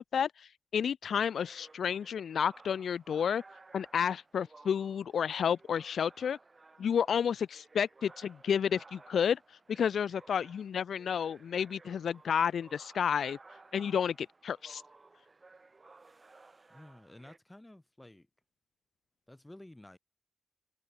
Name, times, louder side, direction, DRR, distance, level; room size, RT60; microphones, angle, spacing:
voice 1, 0.0-3.4 3.7-6.4 6.8-9.4 9.7-13.4 13.7-14.8, left 7 dB, 70° left, 0.4 m, -31 dB
sound 1, 1.4-17.4, right 3 dB, 25° right, 4.0 m, -57 dB
voice 2, 16.7-18.3 19.3-20.0, left 1 dB, 10° left, 2.3 m, -52 dB
wide cardioid pair, 180°, 0 cm